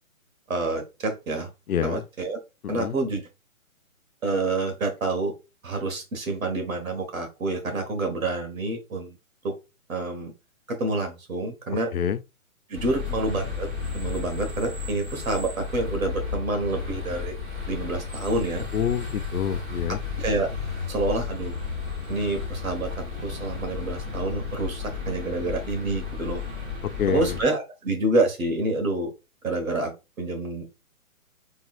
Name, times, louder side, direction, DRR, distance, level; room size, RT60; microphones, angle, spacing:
voice 1, 0.5-1.5 1.8-2.4 2.7-3.2 4.2-5.3 5.6-9.2 9.4-9.5 9.9-10.3 10.7-11.9 12.7-13.7 13.9-17.4 17.7-18.6 20.2-20.5 20.9-21.6 22.1-26.4 27.1-29.1 29.4-30.7, right 2 dB, 70° right, 1.7 m, -28 dB
voice 2, 1.7-2.0 2.6-3.0 11.9-12.2 18.7-20.0 27.0-27.3, left 8 dB, 90° left, 0.6 m, -27 dB
sound 1, 12.7-27.4, left 5 dB, 10° right, 1.3 m, -33 dB
3.9 x 3.7 x 2.5 m
hypercardioid pair, 145°, 42 cm